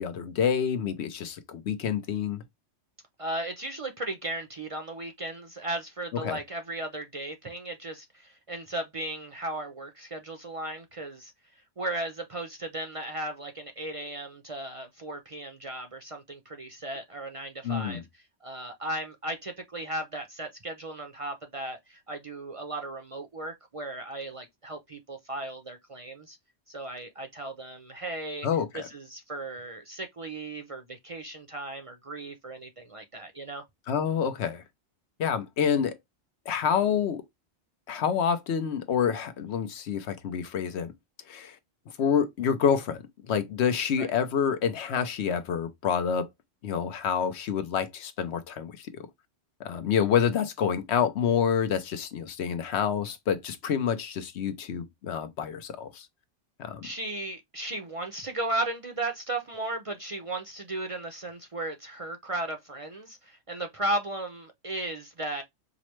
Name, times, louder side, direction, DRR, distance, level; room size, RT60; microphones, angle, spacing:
voice 1, 0.0-2.4 6.2-6.4 17.6-18.0 28.4-28.9 33.9-34.6 35.2-36.0 36.5-37.2 37.9-40.9 41.3-41.6 42.0-46.3 46.6-48.9 49.6-56.1 56.6-56.9, left 7 dB, 80° left, 1.0 m, -28 dB
voice 2, 3.2-11.3 11.8-18.0 18.4-26.4 26.7-28.5 28.7-33.6 44.0-44.1 56.8-65.4, right 1 dB, 40° right, 0.5 m, -36 dB
4.9 x 2.1 x 3.0 m
omnidirectional pair, 1.1 m